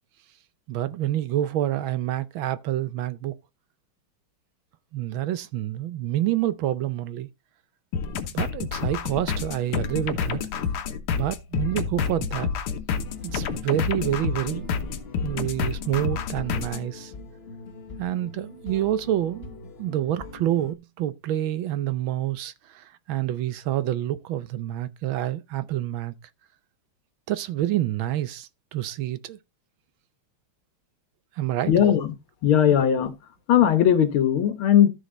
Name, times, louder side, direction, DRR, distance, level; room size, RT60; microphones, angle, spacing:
voice 1, 0.7-3.4 4.9-7.3 8.3-10.4 11.1-12.5 13.2-14.8 15.2-17.1 18.0-26.1 27.3-29.4 31.4-31.7, right 13 dB, 70° right, 1.4 m, -28 dB
sound 1, 7.9-16.8, left 6 dB, 90° left, 2.0 m, -29 dB
sound 2, 13.0-20.7, left 4 dB, 35° left, 1.2 m, -42 dB
voice 2, 31.7-32.1 32.4-33.1 33.5-34.9, left 9 dB, 75° left, 2.0 m, -18 dB
14.0 x 5.3 x 3.8 m
omnidirectional pair, 2.4 m